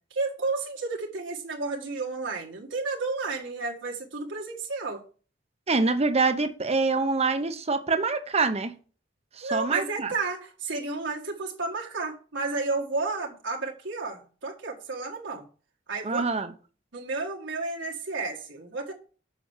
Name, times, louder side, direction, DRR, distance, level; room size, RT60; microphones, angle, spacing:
voice 1, 0.1-5.0 9.4-15.5 15.9-16.2 16.9-18.9, right 3 dB, 75° right, 1.8 m, -32 dB
voice 2, 5.7-8.7 9.4-10.1 16.0-16.5, right 3 dB, 35° right, 0.9 m, -25 dB
7.3 x 6.0 x 7.4 m
head